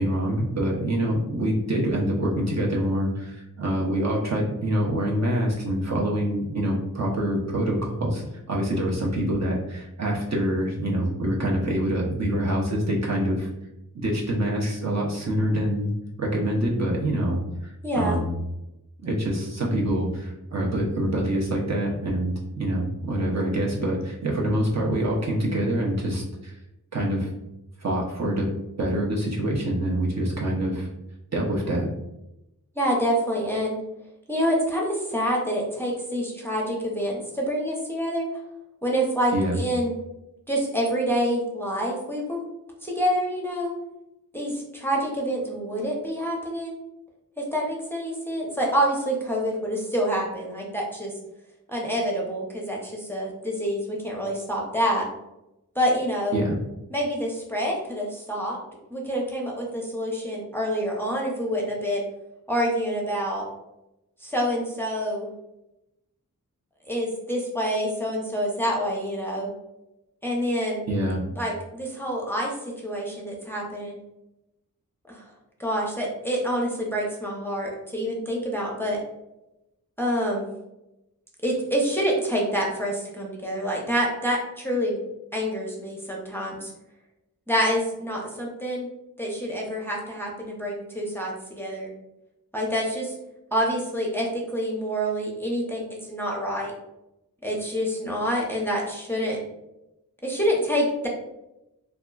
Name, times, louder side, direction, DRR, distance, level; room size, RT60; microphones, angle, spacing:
voice 1, 0.0-13.5 13.9-15.9 16.2-18.4 19.0-26.6 26.9-27.3 27.8-28.5 28.8-30.9 31.3-31.9 39.3-39.6 56.3-56.6 70.9-71.2, right 1 dB, 50° right, -3 dB, 0.7 m, -25 dB
voice 2, 17.8-18.2 32.8-33.8 34.3-38.3 38.8-39.9 40.5-42.4 42.8-43.7 44.3-46.8 47.4-51.1 51.7-55.0 55.8-56.4 56.9-58.6 58.9-62.0 62.5-63.4 64.2-65.3 66.9-69.5 70.2-70.8 71.4-72.5 72.8-74.0 75.1-75.2 75.6-79.0 80.0-80.5 81.4-85.0 85.3-86.7 87.5-88.9 89.2-91.9 92.5-93.1 93.5-95.8 96.1-96.7 97.4-99.4 100.2-101.1, equal, 5° left, -3 dB, 0.6 m, -27 dB
2.8 x 2.4 x 2.3 m, 0.91 s
wide cardioid pair, 50°, 35 cm